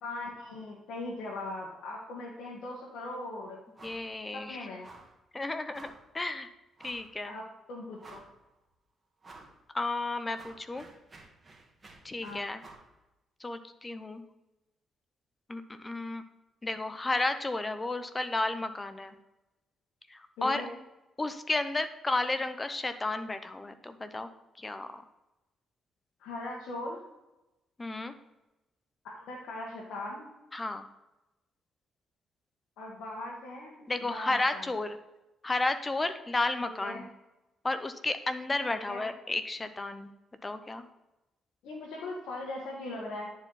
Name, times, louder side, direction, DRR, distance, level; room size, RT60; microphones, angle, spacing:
voice 1, 0.0-3.6 4.3-4.9 7.2-8.2 12.2-12.4 20.4-20.7 26.2-27.0 29.0-30.3 32.8-34.6 36.6-37.0 38.9-39.1 41.6-43.3, left 2 dB, 80° left, -3 dB, 1.5 m, -40 dB
voice 2, 3.8-4.7 5.3-6.5 6.8-7.3 9.7-10.8 12.0-12.6 13.4-14.2 15.5-16.2 16.6-19.2 20.1-20.6 21.2-24.3 24.6-25.0 27.8-28.1 30.5-30.9 33.9-35.0 35.4-37.1 37.6-40.1 40.4-40.9, left 2 dB, 20° left, 10 dB, 0.7 m, -32 dB
sound 1, 3.8-4.1 4.4-4.5 4.8-5.2 5.7-6.1 6.8-7.1 7.6-7.7 8.0-8.5 9.2-9.6 9.9-12.9, right 3 dB, 25° right, 1.6 m, -52 dB
10.0 x 4.6 x 4.0 m, 0.99 s
cardioid pair, 90°, 0 cm